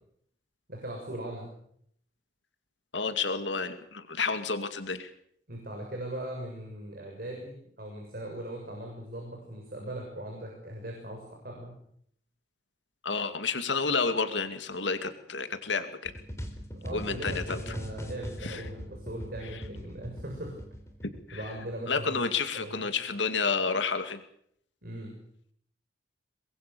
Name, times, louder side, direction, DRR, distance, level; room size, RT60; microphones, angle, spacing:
voice 1, 0.7-1.6 5.5-11.8 16.7-20.5 21.3-22.2 22.5-22.8 24.8-25.2, right 1 dB, 55° right, 0 dB, 6.9 m, -39 dB
voice 2, 2.9-5.1 13.0-16.1 16.9-17.7 18.4-18.6 21.3-21.4 21.9-24.2, left 4 dB, 85° left, 9 dB, 2.4 m, -30 dB
sound 1, 16.1-21.7, equal, 15° left, 3.7 m, -40 dB
24.0 x 22.0 x 6.9 m, 0.68 s
head